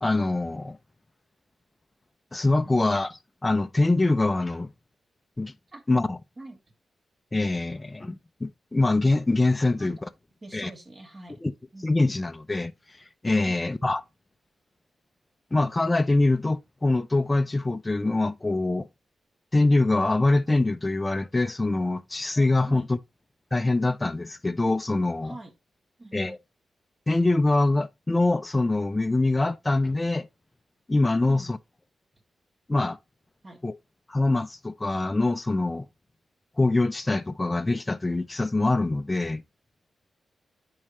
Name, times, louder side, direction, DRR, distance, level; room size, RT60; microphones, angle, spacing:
voice 1, 0.0-0.8 2.3-3.1 3.4-4.7 5.4-5.5 5.9-6.2 7.3-10.1 10.5-10.7 11.4-11.5 11.8-12.7 13.2-14.0 15.5-18.9 19.5-23.0 23.5-25.4 26.1-26.4 27.1-30.3 30.9-31.6 32.7-33.0 33.6-33.7 34.1-35.8 36.6-39.4, left 2 dB, 20° left, 0.5 m, -24 dB
voice 2, 2.6-3.1 5.7-5.8 6.4-6.6 9.8-9.9 10.4-11.4 11.7-12.0 22.7-22.8 25.2-25.5 26.0-26.4 31.3-31.6 33.4-33.6, right 2 dB, 35° right, 2.3 m, -44 dB
8.6 x 4.7 x 3.2 m
cardioid pair, 70°, 0 cm